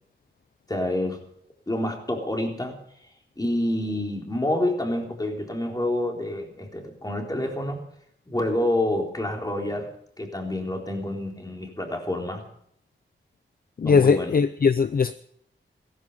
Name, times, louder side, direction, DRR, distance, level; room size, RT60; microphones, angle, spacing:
voice 1, 0.7-1.2 1.7-2.7 3.4-7.8 8.3-9.9 10.2-12.4 13.8-14.3, left 1 dB, 20° left, 1 dB, 3.9 m, -28 dB
voice 2, 13.8-15.1, left 5 dB, 45° left, 13 dB, 0.6 m, -20 dB
16.0 x 14.5 x 5.6 m, 0.69 s
wide cardioid pair, 80°, 20 cm